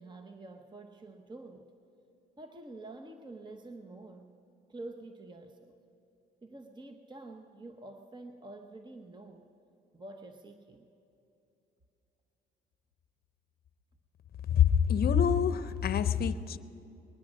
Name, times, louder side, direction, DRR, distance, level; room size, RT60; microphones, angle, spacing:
voice 1, 0.0-1.7 2.4-4.3 4.7-5.8 6.4-9.4 9.9-10.9, right 2 dB, 20° right, 6 dB, 0.9 m, -47 dB
voice 2, 14.5-16.6, left 8 dB, 50° left, 12 dB, 0.7 m, -26 dB
20.5 x 10.0 x 6.3 m, 2.8 s
cardioid pair, 90°, 20 cm